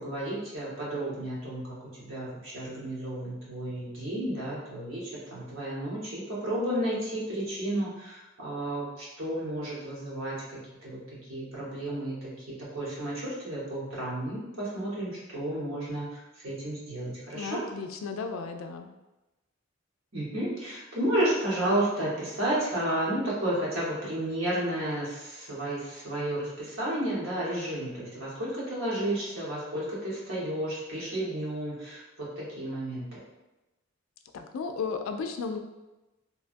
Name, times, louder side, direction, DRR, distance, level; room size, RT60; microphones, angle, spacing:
voice 1, 0.0-11.0 11.3-12.4 12.7-17.6 20.1-32.0 32.4-33.1, right 1 dB, 80° right, -7 dB, 1.2 m, -32 dB
voice 2, 17.3-18.9 34.3-35.6, left 5 dB, 80° left, 6 dB, 0.3 m, -34 dB
3.1 x 2.3 x 2.5 m, 1.0 s
head